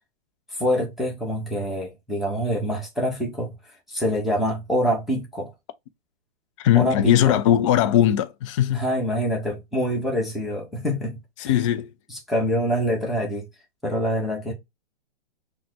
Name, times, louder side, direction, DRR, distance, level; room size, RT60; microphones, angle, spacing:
voice 1, 0.5-3.5 3.9-5.5 6.7-7.4 8.7-11.5 12.1-13.5 13.8-14.5, equal, ahead, 1.0 m, -25 dB
voice 2, 6.6-8.8 11.4-11.9, left 11 dB, 30° left, 0.4 m, -19 dB
5.7 x 2.3 x 2.8 m
hypercardioid pair, 130°, 32 cm